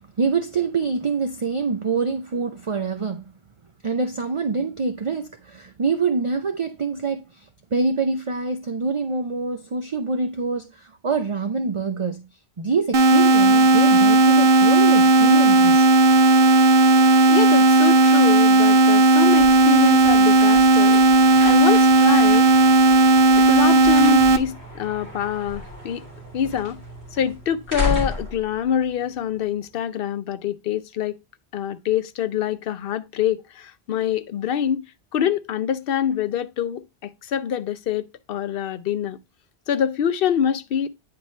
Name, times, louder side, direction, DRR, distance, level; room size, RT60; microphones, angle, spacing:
voice 1, 0.2-3.3 3.8-12.2 12.6-15.9, right 4 dB, 40° right, 0.5 m, -25 dB
sound 1, 12.9-24.4, right 2 dB, 65° right, 0.9 m, -15 dB
voice 2, 17.3-21.0 21.4-22.6 23.3-26.0 26.3-26.8 27.1-31.2 31.5-34.8 35.1-39.2 39.7-40.9, left 9 dB, 65° left, 0.8 m, -25 dB
sound 2, 19.1-29.7, left 3 dB, 80° right, 3.2 m, -34 dB
9.5 x 4.3 x 3.2 m
omnidirectional pair, 1.1 m